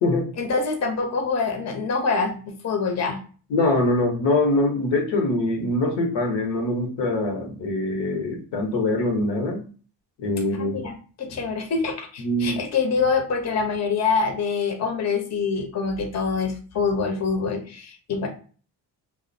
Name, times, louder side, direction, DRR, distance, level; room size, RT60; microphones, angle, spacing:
voice 1, 0.4-3.2 10.6-18.3, left 5 dB, 40° left, 4 dB, 0.7 m, -25 dB
voice 2, 3.5-9.6 10.2-10.8 12.2-12.6, left 2 dB, 75° left, 3 dB, 0.8 m, -23 dB
2.4 x 2.0 x 2.5 m, 0.39 s
supercardioid pair, 65°, 44 cm